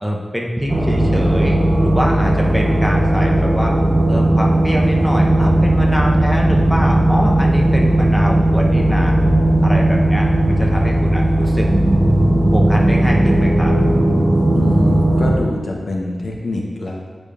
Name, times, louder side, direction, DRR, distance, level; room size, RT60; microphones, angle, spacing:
voice 1, 0.0-3.7 4.1-9.1 9.6-11.7 12.5-13.7, equal, ahead, -1 dB, 0.8 m, -24 dB
sound 1, 0.7-15.4, right 1 dB, 35° right, 0.6 m, -15 dB
voice 2, 14.5-17.0, left 2 dB, 80° left, -1 dB, 0.9 m, -25 dB
8.6 x 5.1 x 2.5 m, 1.5 s
wide cardioid pair, 90°, 0 cm